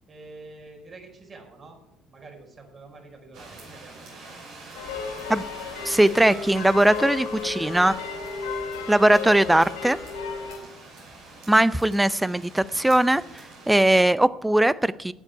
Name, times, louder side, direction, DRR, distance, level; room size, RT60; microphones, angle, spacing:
voice 1, 0.1-1.8 2.1-4.4 5.1-5.8 7.2-7.8, right 3 dB, 40° right, 1 dB, 4.8 m, -47 dB
sound 1, 3.3-13.7, right 3 dB, 60° right, 5.9 m, -45 dB
sound 2, 4.7-10.6, left 5 dB, 75° left, 2.6 m, -34 dB
voice 2, 5.8-7.9 8.9-10.0 11.5-15.1, right 1 dB, 10° right, 18 dB, 0.5 m, -20 dB
13.5 x 10.5 x 4.7 m, 0.80 s
figure-of-eight pair, 55°, 0 cm